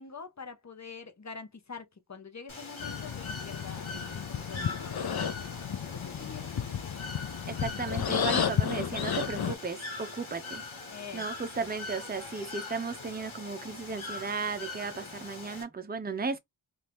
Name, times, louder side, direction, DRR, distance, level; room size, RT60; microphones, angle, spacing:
voice 1, 0.0-6.7 10.9-11.2 11.6-11.7, left 5 dB, 35° left, 0.9 m, -46 dB
Bird / Water, 2.5-15.6, left 3 dB, 90° left, 1.2 m, -42 dB
sound 1, 2.8-9.6, left 8 dB, 55° left, 0.6 m, -32 dB
voice 2, 7.5-10.6 11.1-16.4, right 4 dB, 20° right, 0.6 m, -35 dB
2.8 x 2.5 x 3.4 m
wide cardioid pair, 40°, 46 cm